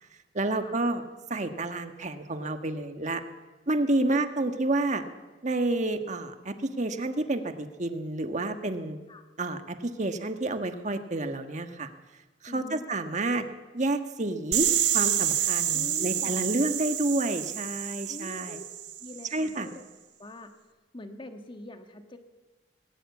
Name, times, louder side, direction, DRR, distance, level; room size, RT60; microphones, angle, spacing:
voice 1, 0.3-1.0 1.3-3.2 3.7-5.0 5.4-9.0 9.4-11.9 12.4-13.4 13.7-14.7 14.9-18.6 19.3-19.7, right 2 dB, 40° right, 7 dB, 1.4 m, -29 dB
voice 2, 12.5-12.9 15.7-16.4 18.1-18.6 19.0-19.8 20.2-20.5 20.9-22.2, left 1 dB, 30° left, 6 dB, 1.4 m, -43 dB
sound 1, 14.5-19.3, right 11 dB, 75° right, 1.4 m, -28 dB
19.5 x 17.0 x 8.3 m, 1.2 s
head